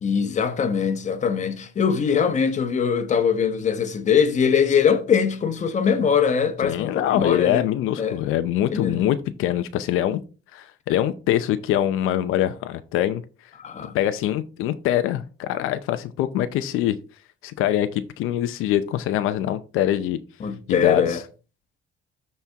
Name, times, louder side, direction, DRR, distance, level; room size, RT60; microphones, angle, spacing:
voice 1, 0.0-7.7 8.0-8.2 8.7-9.1 13.6-13.9 20.4-21.2, left 7 dB, 35° left, 1.1 m, -22 dB
voice 2, 6.6-10.2 10.5-13.2 13.9-17.0 17.4-20.2 20.7-21.2, left 12 dB, 85° left, 0.6 m, -24 dB
13.0 x 4.4 x 3.5 m
cardioid pair, 140°, 21 cm